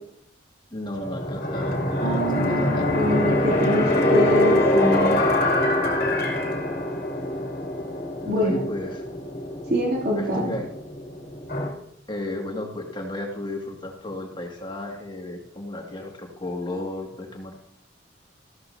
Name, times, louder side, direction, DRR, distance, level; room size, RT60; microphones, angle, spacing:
voice 1, 0.7-2.9 8.2-9.1 10.1-10.7 12.1-17.6, left 1 dB, 25° left, 0 dB, 2.2 m, -33 dB
sound 1, 1.0-11.7, left 1 dB, 50° left, 2.7 m, -24 dB
voice 2, 2.0-5.2 8.3-8.6 9.7-10.5, equal, 60° right, -2 dB, 3.0 m, -25 dB
15.0 x 13.0 x 2.8 m, 0.76 s
head